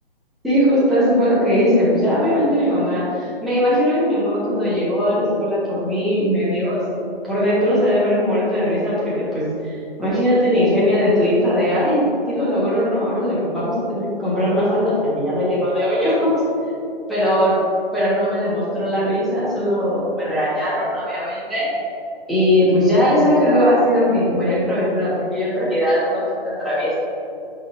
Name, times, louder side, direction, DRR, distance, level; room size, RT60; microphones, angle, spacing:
voice 1, 0.4-6.8 7.2-9.7 10.0-16.3 17.1-17.5 17.9-21.7 22.3-27.0, equal, ahead, -12 dB, 1.4 m, -19 dB
11.5 x 4.0 x 2.6 m, 2.6 s
hypercardioid pair, 150°, 29 cm